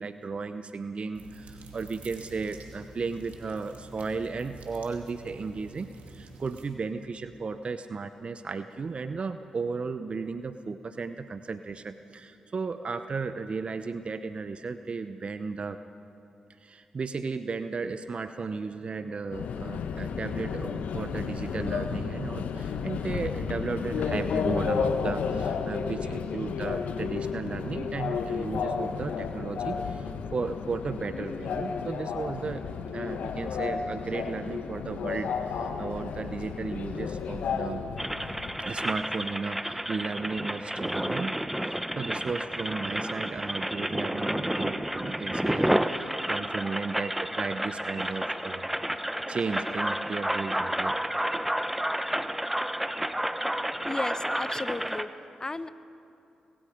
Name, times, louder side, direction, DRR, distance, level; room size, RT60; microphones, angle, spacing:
voice 1, 0.0-15.8 16.6-32.7 32.9-37.8 38.6-48.7 48.9-51.0 54.5-54.6, right 4 dB, 45° right, 10 dB, 0.8 m, -35 dB
Wet Flesh & Blood Squeeze and Gush, 1.1-6.7, right 4 dB, 70° right, 2.5 m, -48 dB
Subway metro underground, 19.3-38.6, left 6 dB, 70° left, 1.1 m, -32 dB
sound 1, 38.0-55.0, right 1 dB, 5° right, 1.0 m, -30 dB
voice 2, 53.9-55.1 55.4-55.7, left 2 dB, 25° left, 14 dB, 0.9 m, -34 dB
25.0 x 21.0 x 5.1 m, 2.7 s
hypercardioid pair, 40°, 3 cm